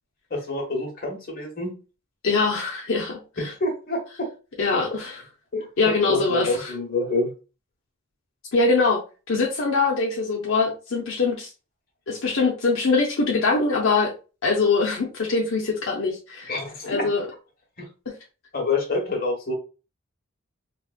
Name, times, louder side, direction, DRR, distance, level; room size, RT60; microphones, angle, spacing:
voice 1, 0.3-1.7 3.4-4.3 4.9-5.0 5.5-7.3 16.5-17.3 17.8-17.9 18.5-19.5, left 3 dB, 45° left, 1 dB, 1.2 m, -27 dB
voice 2, 2.2-3.5 4.6-5.2 5.8-6.7 8.5-9.0 9.3-11.5 12.1-14.1 14.4-16.5 16.9-17.3, left 4 dB, 80° left, -1 dB, 0.7 m, -23 dB
4.0 x 2.3 x 2.4 m, 0.33 s
head